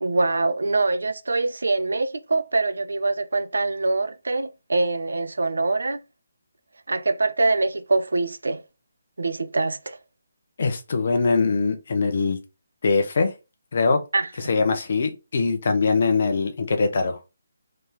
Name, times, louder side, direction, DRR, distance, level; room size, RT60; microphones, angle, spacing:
voice 1, 0.0-6.0 6.9-8.6 9.2-10.0 14.1-14.3, right 3 dB, 65° right, 0.4 m, -24 dB
voice 2, 10.6-12.4 12.8-13.3 13.7-14.0 14.4-17.2, left 4 dB, 50° left, 0.7 m, -22 dB
3.2 x 2.8 x 3.5 m
figure-of-eight pair, 145°, 0 cm